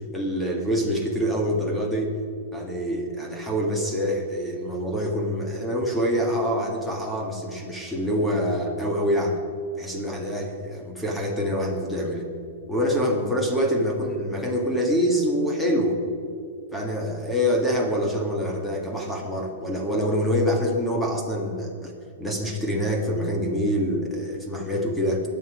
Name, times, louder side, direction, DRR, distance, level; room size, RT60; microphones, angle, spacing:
voice 1, 0.1-2.2 2.5-9.4 9.8-12.3 12.7-16.0 16.7-21.9 22.2-25.2, equal, 5° left, 1 dB, 1.9 m, -25 dB
22.5 x 8.3 x 5.1 m, 2.4 s
supercardioid pair, 160°, 0 cm